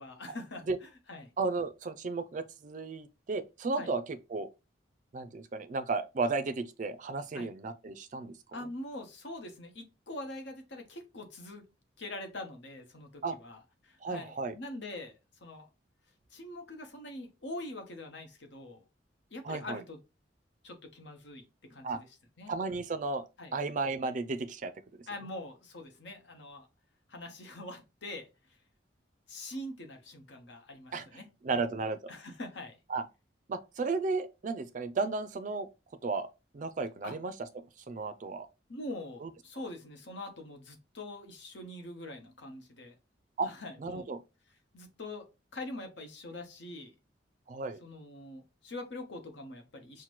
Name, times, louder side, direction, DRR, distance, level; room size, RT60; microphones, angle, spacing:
voice 1, 0.0-1.3 3.8-3.9 7.3-7.5 8.5-11.7 12.0-15.1 15.4-15.7 16.3-18.8 19.3-20.0 20.6-22.1 22.4-22.5 23.4-23.5 25.1-26.7 27.1-28.3 29.3-31.6 32.1-32.8 37.0-37.2 38.7-42.9 43.4-44.1 44.7-45.3 45.5-46.9 47.8-50.0, left 1 dB, 75° left, 1.0 m, -44 dB
voice 2, 1.4-4.5 5.1-8.4 13.2-13.4 14.0-14.5 19.4-19.8 21.8-22.0 22.5-23.2 23.5-25.0 30.9-31.1 31.4-32.1 32.9-33.0 33.5-35.7 36.0-36.3 36.5-37.3 37.9-38.5 39.2-39.3 43.4-43.5 43.8-44.2 47.5-47.8, right 3 dB, 45° right, 0.4 m, -34 dB
5.8 x 2.1 x 3.0 m
head